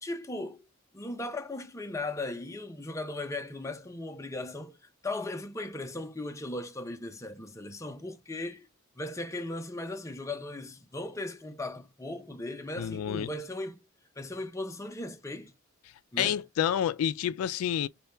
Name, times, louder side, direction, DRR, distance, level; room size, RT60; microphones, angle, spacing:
voice 1, 0.0-0.6 0.9-4.8 5.0-8.7 9.0-13.8 14.2-15.5 16.1-16.4, left 2 dB, 15° left, 0.5 m, -37 dB
voice 2, 12.8-13.3 16.2-17.9, left 9 dB, 85° left, 0.3 m, -29 dB
3.3 x 2.3 x 4.2 m
head